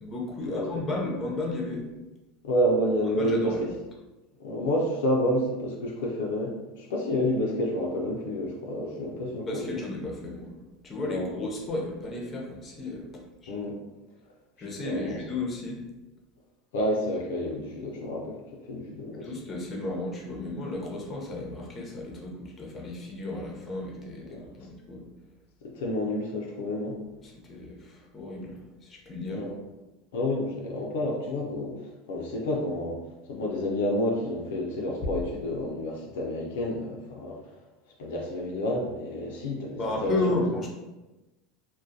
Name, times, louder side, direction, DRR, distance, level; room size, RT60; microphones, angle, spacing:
voice 1, 0.0-1.8 3.1-3.6 9.3-10.6 10.8-13.5 14.6-15.8 19.2-25.1 27.2-29.5 39.8-40.7, left 2 dB, 30° left, -1 dB, 0.7 m, -33 dB
voice 2, 2.4-3.7 4.4-9.7 11.0-11.4 13.5-13.8 14.8-15.2 16.7-19.3 24.3-24.7 25.6-27.0 29.3-29.6 30.1-33.0 33.3-37.4 38.0-40.4, left 1 dB, 80° left, -1 dB, 0.4 m, -29 dB
2.3 x 2.1 x 2.6 m, 1.1 s
supercardioid pair, 100°, 0 cm